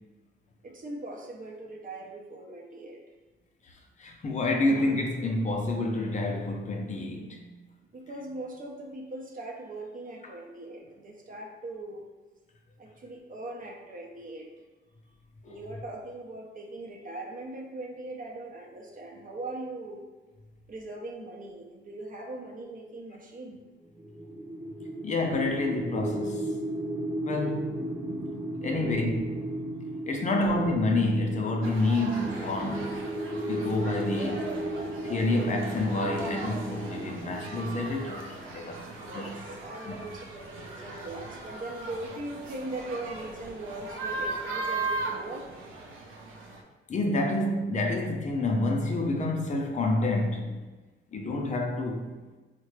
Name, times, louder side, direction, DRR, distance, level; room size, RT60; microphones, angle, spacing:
voice 1, 0.6-3.0 7.9-12.1 12.8-14.5 15.4-20.1 20.7-23.6 28.7-29.1 30.3-30.6 38.9-45.5, right 2 dB, 45° right, 0.6 m, -40 dB
voice 2, 4.0-7.5 15.4-15.6 25.0-26.5 27.2-27.7 28.6-29.2 30.1-33.0 33.3-34.6 35.0-38.3 38.5-39.3 39.8-40.0 46.9-50.6 51.1-52.1, left 2 dB, 40° left, 0.5 m, -28 dB
sound 1, 23.9-39.0, right 1 dB, 10° right, 0.8 m, -35 dB
sound 2, 31.6-46.6, right 3 dB, 85° right, 0.6 m, -38 dB
3.7 x 2.1 x 3.1 m
cardioid pair, 90°, 20 cm